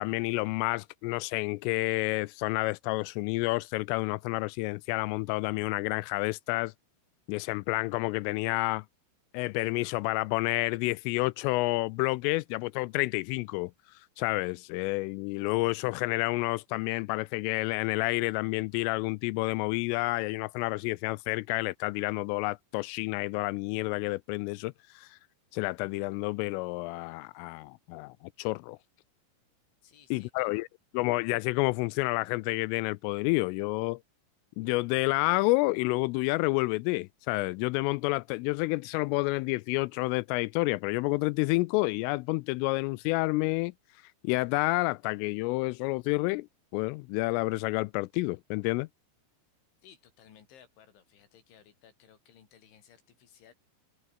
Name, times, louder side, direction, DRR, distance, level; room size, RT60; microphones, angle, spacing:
voice 1, 0.0-6.7 7.3-8.8 9.3-13.7 14.2-25.2 25.5-28.8 30.1-30.7 30.9-34.0 34.6-43.7 44.2-46.5 46.7-48.9, left 23 dB, 85° left, 3.0 m, -29 dB
voice 2, 29.8-30.5 49.8-53.5, left 8 dB, 65° left, 5.8 m, -58 dB
omnidirectional pair, 5.9 m